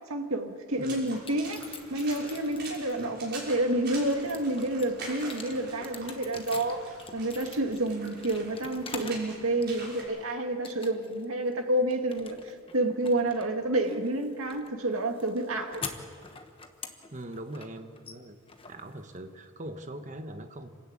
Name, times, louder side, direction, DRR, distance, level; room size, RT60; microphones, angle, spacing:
voice 1, 0.0-15.9, right 1 dB, 80° right, 5 dB, 1.9 m, -29 dB
Water / Splash splatter, 0.7-10.0, right 3 dB, 50° right, 6.4 m, -45 dB
voice 2, 0.8-1.1 3.0-3.2 17.1-18.4 18.7-20.7, right 1 dB, 35° right, 7 dB, 1.3 m, -41 dB
sound 1, 1.1-3.1 3.6-9.3 9.6-10.2 10.6-11.2 11.5-19.5, left 5 dB, 25° left, 1.2 m, -45 dB
27.0 x 13.5 x 8.7 m, 2.3 s
head